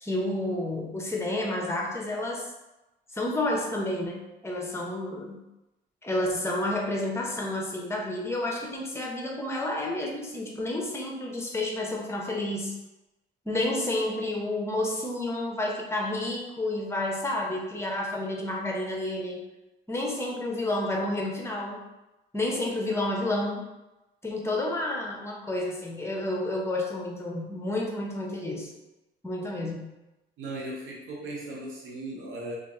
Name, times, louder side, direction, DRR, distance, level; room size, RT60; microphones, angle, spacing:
voice 1, 0.0-2.5 3.1-5.4 6.0-12.7 13.4-19.4 19.9-21.8 22.3-23.6 24.2-28.7 29.2-29.9, left 1 dB, 15° left, -1 dB, 0.8 m, -30 dB
voice 2, 30.4-32.6, right 1 dB, 85° right, -3 dB, 0.8 m, -37 dB
2.7 x 2.5 x 3.6 m, 1.0 s
cardioid pair, 90°, 20 cm